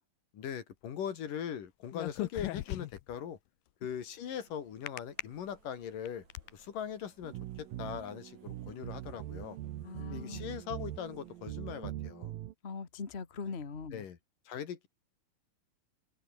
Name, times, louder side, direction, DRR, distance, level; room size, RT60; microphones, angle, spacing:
voice 1, 0.3-3.4 3.8-6.2 6.5-9.6 10.1-12.3 13.9-14.2 14.5-14.9, left 8 dB, 75° left, 3.9 m, -40 dB
sound 1, 1.9-3.2 4.9-5.2 5.8-6.5, left 16 dB, 90° left, 2.6 m, -37 dB
sound 2, 3.8-11.4, right 4 dB, 55° right, 7.1 m, -66 dB
sound 3, 7.2-12.5, right 14 dB, 90° right, 3.0 m, -42 dB
voice 2, 9.8-10.4 12.6-14.1, left 5 dB, 30° left, 1.1 m, -41 dB
omnidirectional pair, 3.9 m